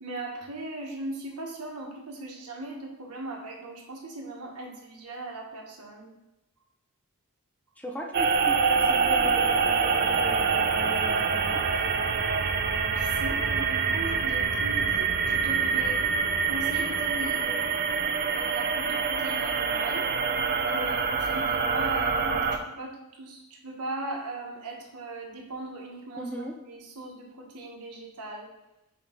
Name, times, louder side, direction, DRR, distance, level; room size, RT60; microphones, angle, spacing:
voice 1, 0.0-6.1 13.0-16.0 16.5-17.6 18.2-20.0 20.6-26.3 26.7-28.5, right 2 dB, 90° right, 0 dB, 1.4 m, -38 dB
voice 2, 7.8-11.6 26.2-26.6, right 1 dB, 5° left, 1 dB, 0.7 m, -38 dB
sound 1, 8.1-22.6, right 5 dB, 45° right, 0.5 m, -26 dB
6.8 x 3.0 x 5.2 m, 0.90 s
head